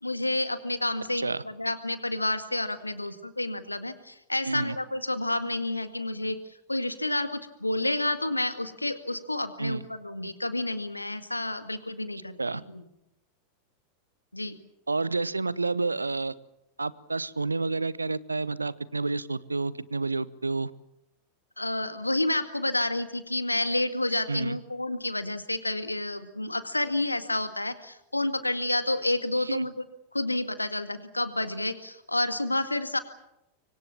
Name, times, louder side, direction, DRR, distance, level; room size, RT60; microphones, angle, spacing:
voice 1, 0.0-6.4 6.7-12.8 14.3-14.6 21.6-29.8 30.1-33.0, left 1 dB, 85° left, 10 dB, 2.0 m, -30 dB
voice 2, 14.9-16.3 16.8-20.7 24.3-24.6 29.4-29.7, right 3 dB, 80° right, 20 dB, 0.9 m, -29 dB
25.5 x 24.5 x 7.2 m, 0.87 s
figure-of-eight pair, 90°, 0 cm